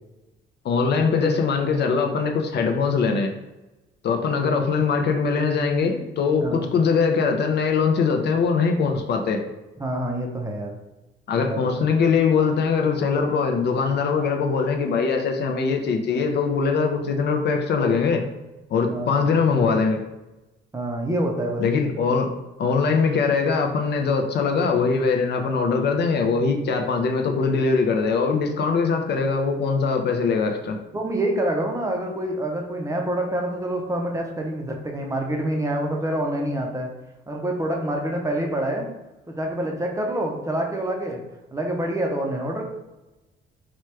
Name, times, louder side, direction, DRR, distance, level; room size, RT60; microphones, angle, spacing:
voice 1, 0.6-3.3 4.0-9.4 11.3-18.2 18.7-20.0 21.6-22.3 22.6-30.8, left 5 dB, 60° left, 4 dB, 0.5 m, -22 dB
voice 2, 9.8-10.7 11.3-11.9 18.9-19.3 20.7-21.6 30.9-36.9 37.3-38.9 39.3-41.2 41.5-42.6, right 1 dB, 15° right, 1 dB, 0.5 m, -26 dB
2.9 x 2.3 x 3.2 m, 1.0 s
cardioid pair, 90°, 20 cm